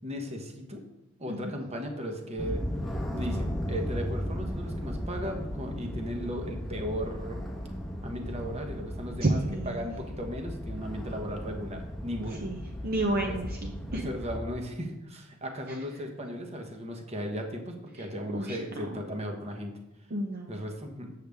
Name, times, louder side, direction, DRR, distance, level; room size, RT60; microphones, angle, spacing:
voice 1, 0.0-0.8 1.2-2.6 3.1-7.4 8.0-9.4 9.6-12.5 13.2-13.4 13.9-19.8 20.5-21.1, equal, 30° right, 3 dB, 1.0 m, -36 dB
sound 1, 2.4-14.4, equal, ahead, 1.0 m, -36 dB
voice 2, 9.2-9.9 12.4-12.6 12.8-14.1 18.0-18.1 18.3-18.6 20.1-20.6, right 1 dB, 45° right, 1 dB, 0.7 m, -30 dB
8.0 x 6.6 x 3.5 m, 0.94 s
head